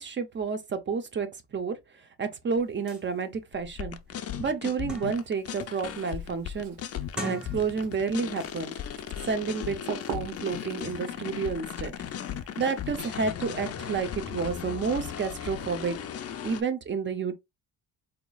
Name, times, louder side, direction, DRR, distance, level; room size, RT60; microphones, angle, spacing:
voice 1, 0.0-1.8 2.2-4.0 4.4-6.8 7.2-8.7 9.2-11.9 12.6-16.0 16.4-17.3, right 5 dB, 30° right, 0.7 m, -30 dB
sound 1, 2.6-2.7 2.9-3.0 3.6-3.7 4.1-5.4 5.8-6.2 7.0-8.0 8.3-8.6, equal, ahead, 1.0 m, -40 dB
sound 2, 3.5-16.6, left 9 dB, 40° left, 0.5 m, -37 dB
Writing, 5.1-13.3, right 6 dB, 80° right, 1.0 m, -46 dB
4.0 x 2.9 x 2.3 m
cardioid pair, 105°, 39 cm